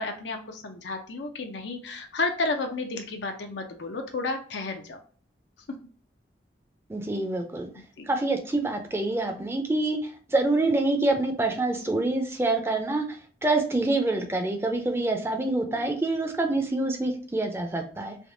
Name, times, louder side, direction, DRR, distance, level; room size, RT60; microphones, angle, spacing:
voice 1, 0.0-5.0 5.7-5.8 8.0-8.1 15.7-15.8, left 3 dB, 85° left, 4 dB, 0.5 m, -32 dB
voice 2, 6.9-7.7 8.1-18.2, right 2 dB, 15° right, 5 dB, 0.5 m, -26 dB
3.4 x 2.7 x 2.6 m, 0.43 s
head